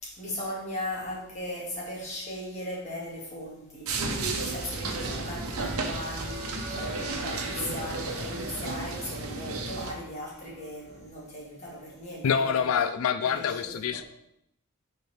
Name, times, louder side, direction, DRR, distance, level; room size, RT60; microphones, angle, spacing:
voice 1, 0.0-12.7 13.2-14.0, left 1 dB, 30° left, 2.0 m, -38 dB
sound 1, 3.9-10.0, right 3 dB, 90° right, 0.9 m, -33 dB
sound 2, 4.1-11.0, equal, 35° right, 2.1 m, -46 dB
voice 2, 12.2-14.0, left 7 dB, 75° left, 0.3 m, -26 dB
8.1 x 4.4 x 3.3 m
head